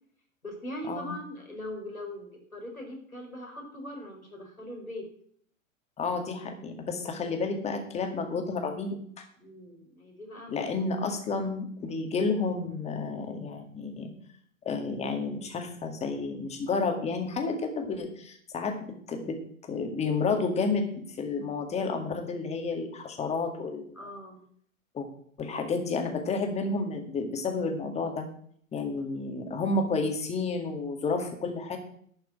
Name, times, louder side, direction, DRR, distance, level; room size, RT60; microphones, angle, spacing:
voice 1, 0.4-5.1 9.4-10.6 11.4-11.5 24.0-24.4 29.0-29.1, left 1 dB, 90° left, 1 dB, 4.7 m, -41 dB
voice 2, 6.0-9.2 10.5-14.1 14.6-19.4 19.7-23.9 24.9-25.1 25.4-28.3 28.7-31.8, left 4 dB, 15° left, 5 dB, 2.1 m, -31 dB
12.0 x 5.9 x 8.8 m, 0.62 s
figure-of-eight pair, 105°, 41 cm